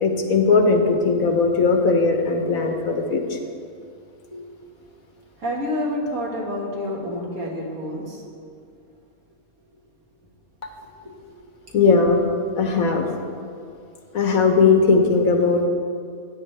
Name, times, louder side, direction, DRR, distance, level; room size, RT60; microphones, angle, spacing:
voice 1, 0.0-3.4 11.7-12.2 12.6-13.1 14.1-15.7, left 4 dB, 75° left, 3 dB, 1.6 m, -18 dB
voice 2, 5.4-8.2 10.8-11.2, left 1 dB, 80° right, -3 dB, 2.4 m, -29 dB
15.5 x 9.4 x 3.3 m, 2.3 s
omnidirectional pair, 1.5 m